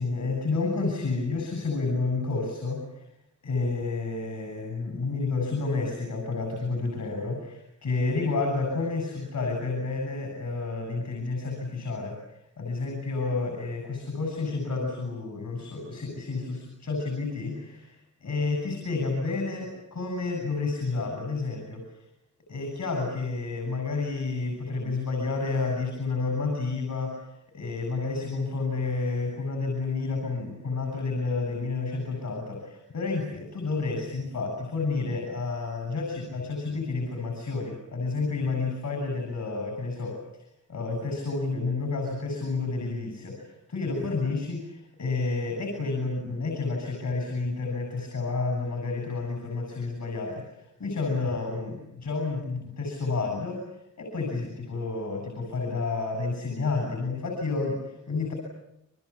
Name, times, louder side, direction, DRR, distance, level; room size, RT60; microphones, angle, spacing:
voice 1, 0.0-3.1 3.4-21.8 22.5-53.6 54.0-58.3, left 3 dB, 75° left, 2 dB, 7.5 m, -30 dB
30.0 x 23.0 x 8.5 m, 0.80 s
wide cardioid pair, 100°, 29 cm